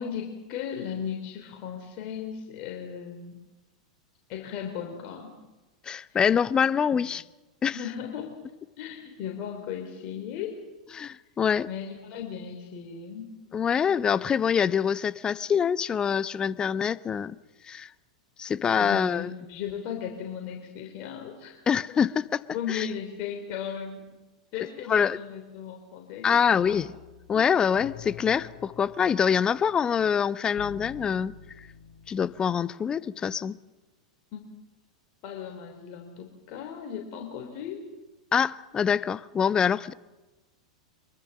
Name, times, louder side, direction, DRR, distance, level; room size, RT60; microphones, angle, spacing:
voice 1, 0.0-3.4 4.3-5.3 6.1-6.2 7.7-8.3 8.8-10.6 11.7-13.3 18.8-21.6 22.5-24.0 24.5-26.8 27.3-27.5 34.3-34.4 35.2-37.8, left 8 dB, 45° left, 3.3 m, -36 dB
voice 2, 5.9-7.2 7.6-7.8 10.9-11.7 13.5-17.4 17.7-17.9 18.4-19.3 21.7-22.4 22.7-22.9 24.9-25.2 26.2-26.9 27.3-31.7 32.1-33.6 38.3-39.9, left 7 dB, 25° left, 0.7 m, -25 dB
sound 1, 26.6-32.5, left 8 dB, 60° left, 1.8 m, -47 dB
24.0 x 22.5 x 7.3 m
figure-of-eight pair, 90°, 4 cm